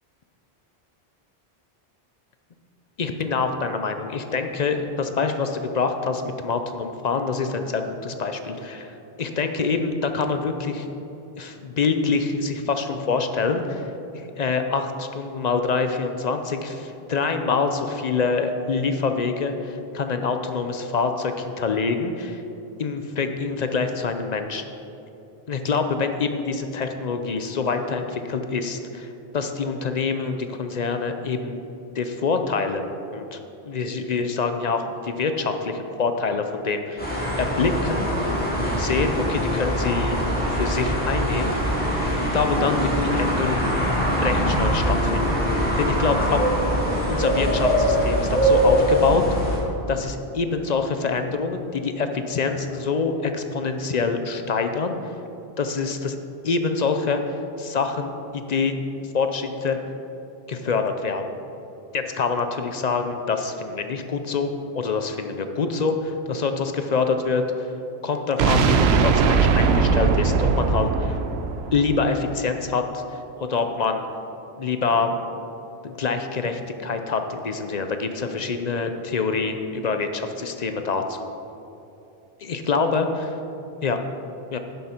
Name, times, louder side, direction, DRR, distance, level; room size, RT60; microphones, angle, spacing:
voice 1, 3.0-8.9 9.2-10.9 11.4-13.9 14.1-22.4 22.8-24.6 25.5-31.6 31.9-32.8 33.1-33.4 33.7-37.0 37.4-40.2 40.5-41.5 42.3-43.8 44.2-46.5 47.1-49.2 49.9-55.1 55.6-56.2 56.4-58.8 59.1-59.8 60.5-61.2 61.9-64.5 64.7-67.7 68.0-71.2 71.7-73.0 73.4-74.0 74.6-75.4 75.8-81.3 82.4-83.1 83.8-84.0 84.5-84.6, left 4 dB, 50° left, 7 dB, 0.6 m, -25 dB
sound 1, 37.0-49.6, equal, 10° left, 2.0 m, -22 dB
sound 2, 68.4-72.3, right 5 dB, 85° right, 0.9 m, -20 dB
11.0 x 7.5 x 4.4 m, 2.8 s
omnidirectional pair, 1.1 m